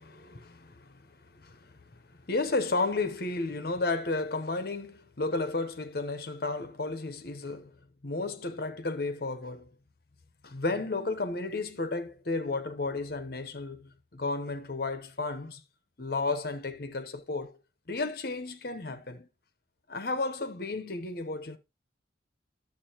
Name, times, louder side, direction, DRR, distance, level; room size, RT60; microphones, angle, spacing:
voice 1, 0.0-7.8 8.0-9.7 10.4-15.6 16.0-17.6 17.9-19.3 19.9-21.6, left 3 dB, 55° left, 0.9 m, -33 dB
11.0 x 7.2 x 2.9 m
head